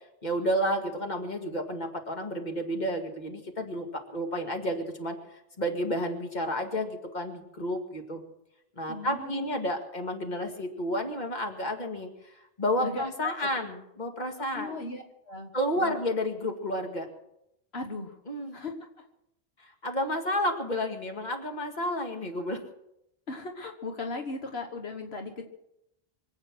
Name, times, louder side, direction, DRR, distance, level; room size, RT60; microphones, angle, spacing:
voice 1, 0.2-8.2 8.8-14.8 15.5-17.1 18.3-18.6 19.6-22.6, equal, 45° left, 3 dB, 2.2 m, -31 dB
voice 2, 8.9-9.5 12.8-13.3 14.5-15.5 15.8-16.0 17.7-18.2 18.5-19.1 23.3-25.4, left 3 dB, 80° left, 4 dB, 1.7 m, -37 dB
25.5 x 8.8 x 6.0 m, 0.82 s
omnidirectional pair, 1.0 m